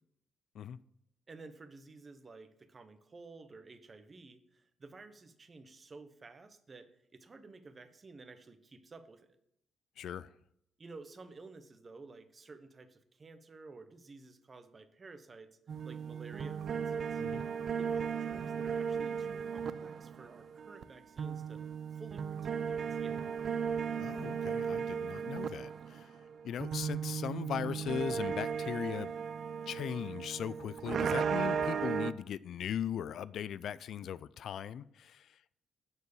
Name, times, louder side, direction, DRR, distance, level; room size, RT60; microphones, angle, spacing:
voice 1, 1.3-9.4 10.8-17.2 17.8-21.6 21.9-23.2, right 3 dB, 35° right, 1.0 m, -53 dB
voice 2, 10.0-10.3 17.2-17.4 24.0-26.1 26.4-29.1 29.7-35.5, left 9 dB, 70° left, 0.3 m, -39 dB
sound 1, 15.7-20.8 21.2-32.1, right 7 dB, 55° right, 0.5 m, -36 dB
9.5 x 4.6 x 6.8 m
cardioid pair, 90°, 0 cm